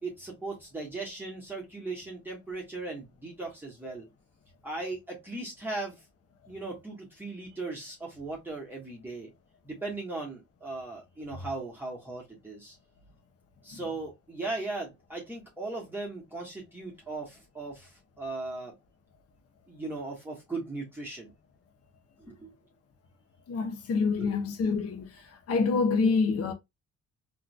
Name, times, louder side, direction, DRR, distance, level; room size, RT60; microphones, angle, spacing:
voice 1, 0.0-4.1 4.6-6.0 6.5-9.3 9.6-12.8 13.6-18.7 19.7-21.3 22.2-22.5 24.2-24.4, right 3 dB, 5° right, 1.5 m, -38 dB
voice 2, 23.5-25.2 25.5-26.5, left 4 dB, 55° left, 0.9 m, -26 dB
3.7 x 3.1 x 2.3 m
cardioid pair, 90°, 30 cm